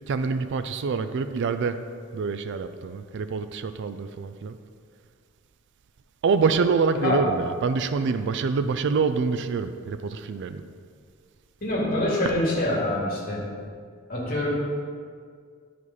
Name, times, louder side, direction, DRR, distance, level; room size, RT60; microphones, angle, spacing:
voice 1, 0.1-1.8 2.1-4.5 6.2-10.6, right 5 dB, 55° right, 10 dB, 0.4 m, -26 dB
voice 2, 11.6-13.4 14.1-14.5, left 1 dB, 45° left, -5 dB, 2.3 m, -25 dB
11.0 x 5.1 x 4.1 m, 2.1 s
head